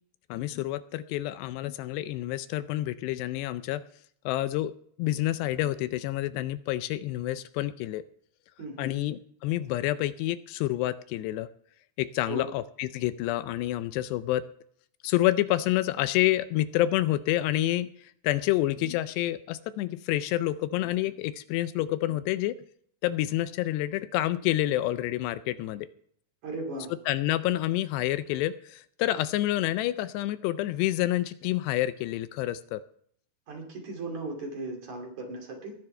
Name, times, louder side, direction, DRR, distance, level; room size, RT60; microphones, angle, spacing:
voice 1, 0.3-3.8 4.3-4.7 5.0-8.0 8.8-11.5 12.0-14.5 15.0-22.6 23.0-25.9 27.1-32.8, left 15 dB, 85° left, 13 dB, 2.7 m, -28 dB
voice 2, 8.6-9.0 12.3-12.4 26.4-26.9 33.5-35.7, right 2 dB, 50° right, 2 dB, 3.6 m, -37 dB
20.5 x 10.5 x 3.3 m, 0.62 s
omnidirectional pair, 4.9 m